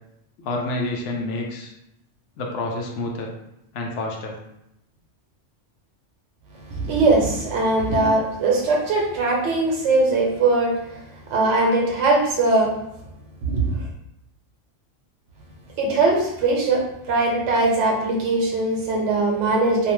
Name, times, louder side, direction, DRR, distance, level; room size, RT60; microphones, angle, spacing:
voice 1, 0.4-1.7 2.4-3.3 3.7-4.4, left 2 dB, 80° left, 1 dB, 0.9 m, -28 dB
voice 2, 6.7-10.7 11.3-12.7 13.5-13.7 15.8-19.9, right 2 dB, 80° right, -1 dB, 1.0 m, -20 dB
2.7 x 2.1 x 3.0 m, 0.83 s
omnidirectional pair, 1.2 m